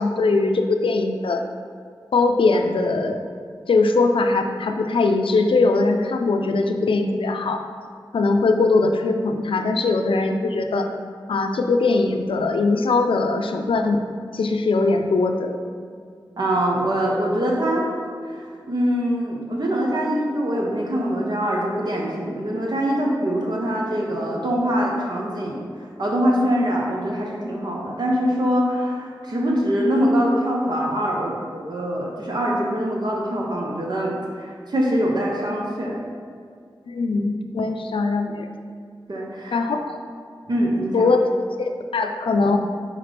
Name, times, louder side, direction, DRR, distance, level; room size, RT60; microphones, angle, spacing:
voice 1, 0.0-1.4 2.1-3.2 3.7-7.6 8.1-10.9 11.3-14.0 14.3-15.6 36.9-38.5 39.5-40.0 40.9-41.2 41.6-42.6, left 3 dB, 90° left, 5 dB, 0.4 m, -21 dB
voice 2, 16.4-17.9 18.2-36.0 39.1-39.6 40.5-41.1, equal, 55° right, -3 dB, 0.8 m, -23 dB
5.7 x 4.9 x 3.4 m, 2.1 s
wide cardioid pair, 100°, 9 cm